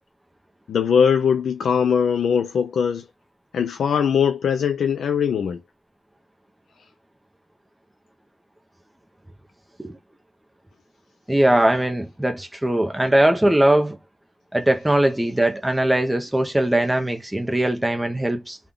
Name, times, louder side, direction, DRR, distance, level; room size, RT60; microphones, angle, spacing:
voice 1, 0.7-3.0 3.5-5.6, left 7 dB, 80° left, 0.4 m, -20 dB
voice 2, 11.3-14.0 14.5-18.6, right 1 dB, 10° right, 0.7 m, -20 dB
3.5 x 2.3 x 3.6 m
wide cardioid pair, 115°, 0 cm